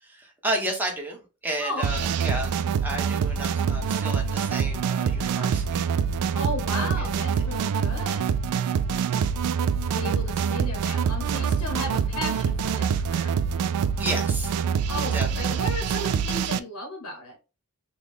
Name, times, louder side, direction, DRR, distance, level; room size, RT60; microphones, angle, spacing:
voice 1, 0.0-2.6 2.8-5.9 6.7-7.1 7.4-7.5 9.0-9.1 14.0-14.5 15.1-15.6, right 1 dB, 10° right, 0 dB, 1.0 m, -32 dB
voice 2, 1.6-2.1 6.3-8.3 9.8-13.4 14.9-17.4, left 1 dB, 80° left, 3 dB, 0.9 m, -35 dB
sound 1, 1.8-16.6, right 7 dB, 80° right, 0.3 m, -25 dB
3.9 x 2.2 x 3.4 m, 0.31 s
head